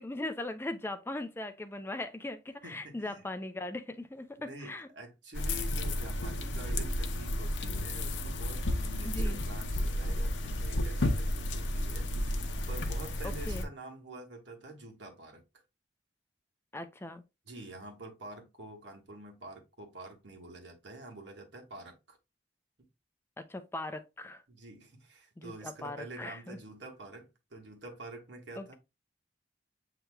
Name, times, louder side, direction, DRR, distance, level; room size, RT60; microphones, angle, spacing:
voice 1, 0.0-4.9 9.0-9.4 13.2-13.7 16.7-17.2 23.4-24.4 25.4-26.6 28.6-28.7, left 2 dB, 15° left, 0.4 m, -39 dB
voice 2, 2.6-3.3 4.4-12.1 12.4-15.4 17.4-22.2 22.8-22.9 24.5-28.8, right 2 dB, 75° right, 1.5 m, -47 dB
sound 1, 5.3-13.6, left 1 dB, 85° left, 0.7 m, -32 dB
7.9 x 2.9 x 2.2 m
head